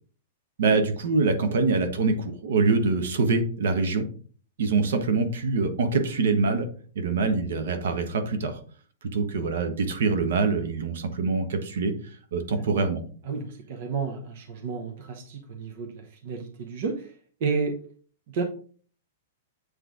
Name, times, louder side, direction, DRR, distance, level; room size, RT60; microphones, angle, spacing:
voice 1, 0.6-4.0 4.6-6.7 6.9-8.6 9.0-11.9 12.3-13.0, right 4 dB, 70° right, 7 dB, 1.2 m, -24 dB
voice 2, 13.2-17.1 17.4-17.8 18.3-18.4, right 5 dB, 45° right, 4 dB, 0.9 m, -31 dB
8.1 x 3.3 x 3.8 m, 0.43 s
supercardioid pair, 175°, 0 cm